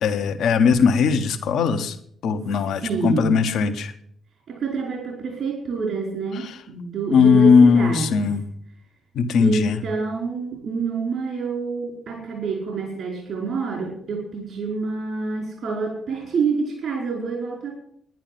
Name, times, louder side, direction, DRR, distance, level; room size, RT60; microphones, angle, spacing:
voice 1, 0.0-2.0 2.2-3.9 6.3-6.6 7.1-8.4 9.1-9.8, left 5 dB, 60° left, 8 dB, 1.4 m, -18 dB
voice 2, 2.8-3.4 4.5-8.1 9.4-17.8, right 4 dB, 55° right, 0 dB, 4.8 m, -27 dB
11.0 x 10.5 x 7.6 m, 0.65 s
hypercardioid pair, 45°, 0 cm